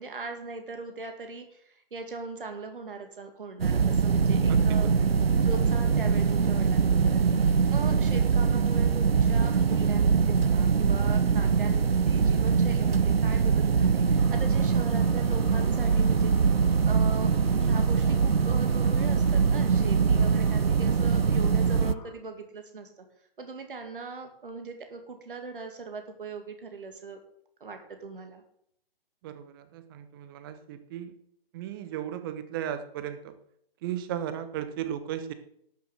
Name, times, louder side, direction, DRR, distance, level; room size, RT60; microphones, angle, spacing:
voice 1, 0.0-4.9 5.4-16.3 16.8-23.0 23.4-27.2 27.6-28.4, right 3 dB, 60° right, 6 dB, 2.3 m, -40 dB
sound 1, 3.6-21.9, right 6 dB, 80° right, 0.6 m, -23 dB
voice 2, 4.5-5.1 29.2-31.1 31.5-33.3 33.8-35.3, right 10 dB, 25° right, 11 dB, 1.1 m, -36 dB
sound 2, 14.2-22.1, left 5 dB, 20° left, 2.0 m, -48 dB
12.5 x 6.8 x 7.7 m, 0.70 s
figure-of-eight pair, 135°, 30 cm